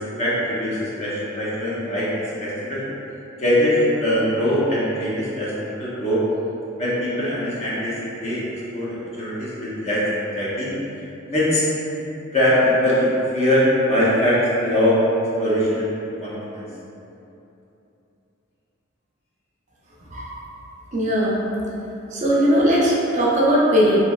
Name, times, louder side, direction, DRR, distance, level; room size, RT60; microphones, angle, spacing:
voice 1, 0.0-2.8 3.4-5.5 5.8-6.2 6.8-8.4 8.7-10.7 11.3-11.7 12.3-15.0 15.4-15.9 16.2-16.6, left 1 dB, 35° left, -8 dB, 0.7 m, -22 dB
voice 2, 20.9-21.4 22.1-24.0, equal, 35° right, -6 dB, 0.5 m, -18 dB
3.0 x 2.6 x 2.3 m, 2.9 s
head